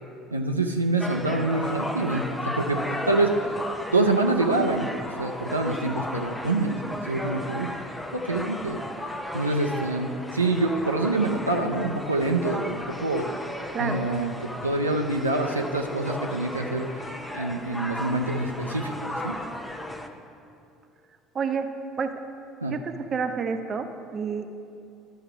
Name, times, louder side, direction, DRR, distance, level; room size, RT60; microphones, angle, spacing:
voice 1, 0.3-3.3 3.9-4.9 5.2-6.8 7.1-7.7 8.1-8.8 9.3-13.3 13.8-16.9 17.3-19.4 22.6-22.8, right 2 dB, 90° right, 2 dB, 0.4 m, -26 dB
sound 1, 1.0-20.1, left 1 dB, 10° left, 0.7 m, -35 dB
voice 2, 13.7-14.1 21.3-21.7 22.0-22.1 22.7-24.5, right 6 dB, 40° right, 7 dB, 0.6 m, -29 dB
12.5 x 4.4 x 4.9 m, 2.6 s
figure-of-eight pair, 60°, 0 cm